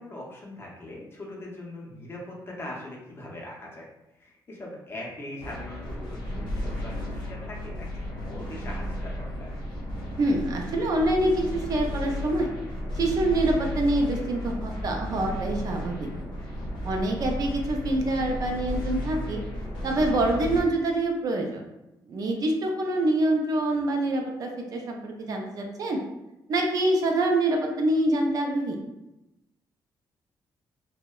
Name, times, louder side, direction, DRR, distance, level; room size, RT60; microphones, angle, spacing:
voice 1, 0.0-9.5, left 1 dB, 30° left, -3 dB, 0.6 m, -41 dB
sound 1, 5.4-20.6, left 1 dB, 70° left, 0.7 m, -34 dB
voice 2, 10.2-12.5 12.9-16.1 16.8-19.4 19.8-21.6 22.1-26.0 26.5-28.8, right 1 dB, 50° right, 2 dB, 0.4 m, -25 dB
2.7 x 2.0 x 2.2 m, 0.94 s
cardioid pair, 130°, 8 cm